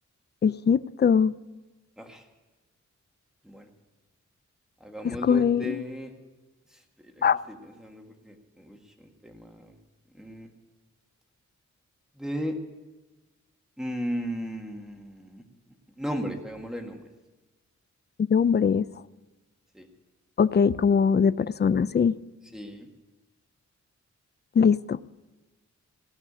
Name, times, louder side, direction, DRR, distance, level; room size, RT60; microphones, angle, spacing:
voice 1, 0.4-1.3 5.0-5.8 7.2-7.4 18.2-18.9 20.4-22.2 24.6-25.0, left 6 dB, 35° left, 16 dB, 0.4 m, -22 dB
voice 2, 4.8-6.1 6.7-7.1 7.5-7.6 7.8-9.7 10.1-10.5 12.2-12.6 13.8-15.4 16.0-17.1 19.7-19.9 22.5-22.9, equal, ahead, 3 dB, 1.8 m, -35 dB
17.0 x 6.0 x 9.8 m, 1.2 s
wide cardioid pair, 85°, 30 cm